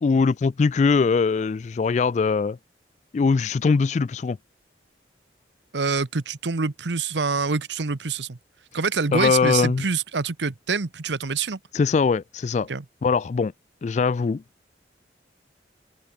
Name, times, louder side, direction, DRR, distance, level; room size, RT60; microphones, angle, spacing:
voice 1, 0.0-2.6 3.1-4.4 9.1-9.8 11.7-12.7 13.0-13.5 13.8-14.4, left 4 dB, 40° left, 0.3 m, -21 dB
voice 2, 5.7-8.4 8.7-11.6 12.7-12.8, right 4 dB, 75° right, 0.9 m, -26 dB
open air
head